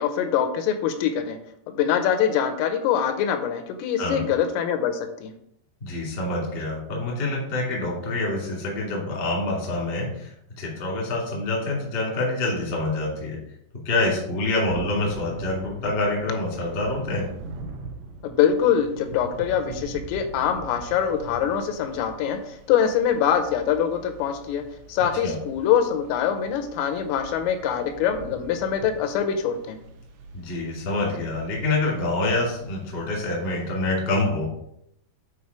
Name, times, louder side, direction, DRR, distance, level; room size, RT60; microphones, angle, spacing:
voice 1, 0.0-1.4 1.7-5.3 18.2-24.6 24.9-29.8, left 8 dB, 85° left, 7 dB, 3.3 m, -24 dB
voice 2, 5.8-13.4 13.8-17.3 25.0-25.3 30.3-34.4, left 2 dB, 35° left, -3 dB, 0.9 m, -26 dB
Thunder / Rain, 14.7-33.7, right 3 dB, 75° right, 2.9 m, -42 dB
8.6 x 4.5 x 4.7 m, 0.74 s
omnidirectional pair, 5.9 m